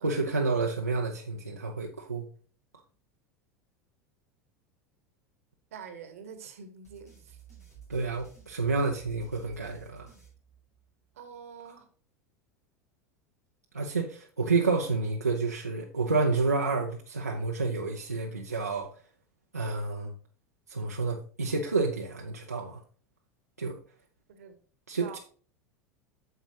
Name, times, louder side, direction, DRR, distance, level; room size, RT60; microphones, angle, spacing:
voice 1, 0.0-2.3 7.9-10.1 13.7-18.9 19.5-20.1 20.7-22.8 23.6-23.8 24.9-25.2, right 3 dB, 85° right, 0.8 m, -29 dB
voice 2, 5.7-7.4 11.1-11.9 24.3-24.6 25.0-25.2, right 6 dB, 65° right, 1.3 m, -46 dB
sound 1, 6.8-11.1, right 8 dB, 90° left, 4.8 m, -53 dB
9.3 x 7.0 x 2.9 m
figure-of-eight pair, 80°, 8 cm